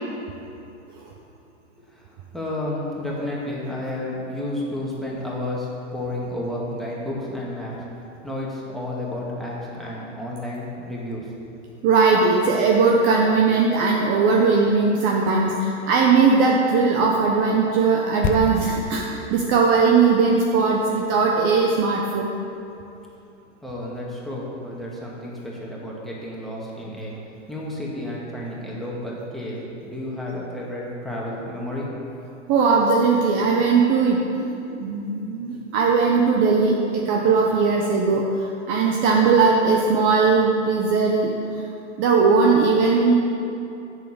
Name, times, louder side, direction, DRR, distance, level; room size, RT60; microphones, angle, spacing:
voice 1, 2.3-7.8 8.2-11.2 23.6-27.1 27.5-31.9, left 1 dB, ahead, -5 dB, 1.9 m, -31 dB
voice 2, 11.8-22.3 32.5-41.6 42.0-43.1, right 4 dB, 30° right, -1 dB, 0.9 m, -19 dB
sound 1, 18.2-22.2 22.4-22.5, left 4 dB, 25° left, 0.6 m, -32 dB
8.2 x 6.5 x 7.2 m, 2.7 s
hypercardioid pair, 125°, 36 cm